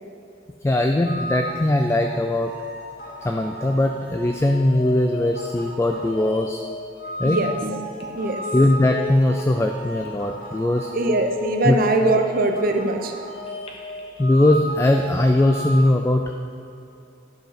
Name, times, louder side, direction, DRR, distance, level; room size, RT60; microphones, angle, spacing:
voice 1, 0.6-2.5 3.2-6.6 7.2-7.4 8.5-10.9 11.6-11.8 14.1-16.3, left 1 dB, 15° left, 4 dB, 0.3 m, -20 dB
sound 1, 1.0-15.8, equal, 50° left, 1.8 m, -35 dB
voice 2, 7.2-7.8 8.1-8.4 10.9-13.1, right 2 dB, 50° right, 4 dB, 0.7 m, -22 dB
Telephone, 7.8-8.1 8.4-9.5 10.0-10.1 10.6-10.7 11.1-12.2 13.5-14.1, left 1 dB, 30° left, 1.0 m, -30 dB
10.5 x 4.9 x 5.8 m, 2.7 s
head